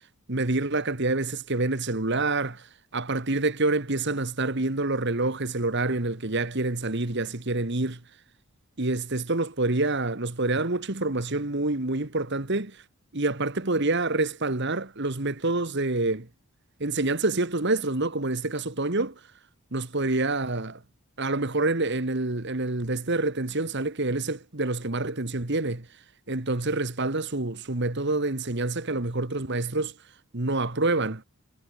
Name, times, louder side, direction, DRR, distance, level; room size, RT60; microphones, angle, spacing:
voice 1, 0.3-2.7 2.9-8.0 8.8-12.8 13.1-16.3 16.8-19.2 19.7-20.8 21.2-25.9 26.3-29.9 30.3-31.2, right 2 dB, 50° right, 1.7 m, -27 dB
head